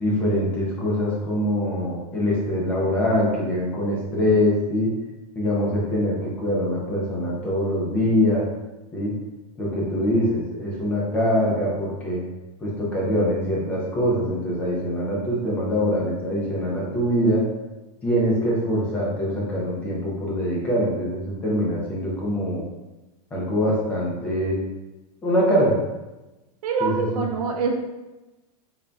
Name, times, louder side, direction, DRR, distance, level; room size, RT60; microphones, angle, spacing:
voice 1, 0.0-4.9 5.4-8.4 8.9-9.1 9.6-12.2 12.6-17.4 18.0-22.6 23.3-24.6 25.2-25.7 26.8-27.2, equal, 5° left, -4 dB, 0.3 m, -23 dB
voice 2, 26.6-27.8, right 5 dB, 65° right, 2 dB, 0.7 m, -25 dB
3.8 x 2.1 x 3.3 m, 1.1 s
supercardioid pair, 180°, 20 cm